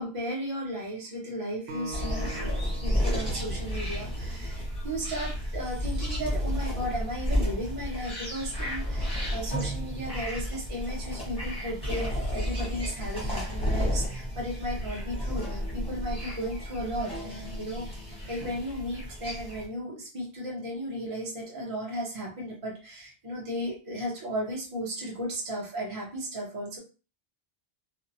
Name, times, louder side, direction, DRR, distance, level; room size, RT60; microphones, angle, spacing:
voice 1, 0.0-17.9 18.3-26.8, equal, 35° right, -4 dB, 0.9 m, -35 dB
Acoustic guitar, 1.7-5.0, right 2 dB, 85° right, 0.9 m, -43 dB
sound 1, 1.9-19.7, equal, 5° left, 1.0 m, -32 dB
2.7 x 2.2 x 2.7 m, 0.34 s
omnidirectional pair, 1.0 m